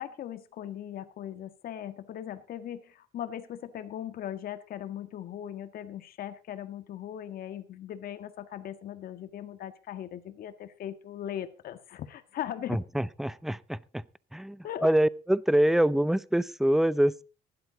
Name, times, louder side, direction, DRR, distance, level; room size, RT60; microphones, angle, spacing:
voice 1, 0.0-12.8 14.6-14.9, left 10 dB, 60° left, 10 dB, 1.7 m, -39 dB
voice 2, 12.7-14.0 14.3-17.2, right 1 dB, ahead, 20 dB, 0.6 m, -25 dB
15.5 x 11.5 x 4.0 m, 0.34 s
cardioid pair, 110°, 17 cm